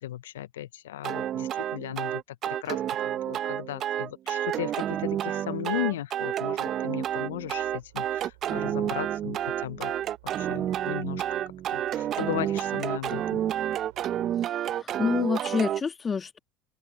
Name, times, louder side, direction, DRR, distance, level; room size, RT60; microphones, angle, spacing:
voice 1, 0.0-9.9 10.3-11.2 11.7-13.4, left 13 dB, 85° left, 0.5 m, -36 dB
sound 1, 1.0-15.8, right 11 dB, 50° right, 0.8 m, -30 dB
sound 2, 7.0-14.4, right 24 dB, 75° right, 5.0 m, -55 dB
voice 2, 14.4-16.4, left 5 dB, 35° left, 1.7 m, -28 dB
open air
hypercardioid pair, 65°, 0 cm